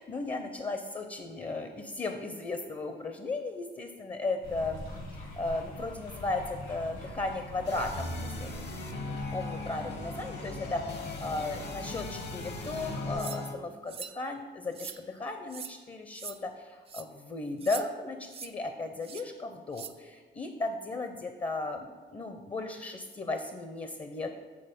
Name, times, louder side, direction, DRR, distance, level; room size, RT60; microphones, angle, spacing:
voice 1, 0.0-4.8 5.2-8.7 8.9-24.3, left 2 dB, 25° left, 6 dB, 0.6 m, -36 dB
sound 1, 4.4-13.2, left 1 dB, 80° left, 2.2 m, -42 dB
sound 2, 7.7-13.5, left 2 dB, 60° left, 1.1 m, -39 dB
sound 3, 13.2-13.4 13.9-14.2 14.7-15.0 15.5-15.7 16.1-16.4 16.9-17.0 17.6-17.8 18.3-18.5 19.0-19.2 19.7-19.9, right 6 dB, 30° right, 0.4 m, -41 dB
7.7 x 3.8 x 5.3 m, 1.5 s
cardioid pair, 90°, 20 cm